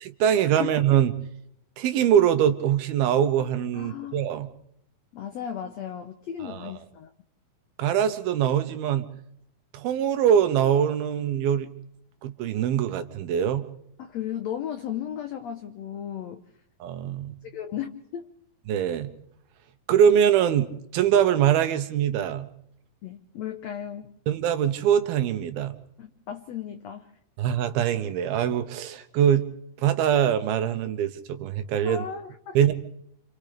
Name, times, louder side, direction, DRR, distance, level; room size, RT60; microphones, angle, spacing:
voice 1, 0.0-1.1 1.8-4.5 6.4-6.7 7.8-9.1 9.7-11.7 12.2-13.7 16.8-17.3 18.7-19.1 19.9-22.5 24.3-25.7 27.4-29.5 29.8-32.0 32.5-32.7, right 9 dB, 80° right, 8 dB, 3.0 m, -23 dB
voice 2, 3.7-4.2 5.1-7.1 14.0-16.4 17.5-18.3 23.0-24.1 26.0-27.1 31.8-32.6, left 9 dB, 85° left, 8 dB, 1.5 m, -35 dB
29.5 x 27.0 x 3.4 m, 0.75 s
omnidirectional pair, 4.3 m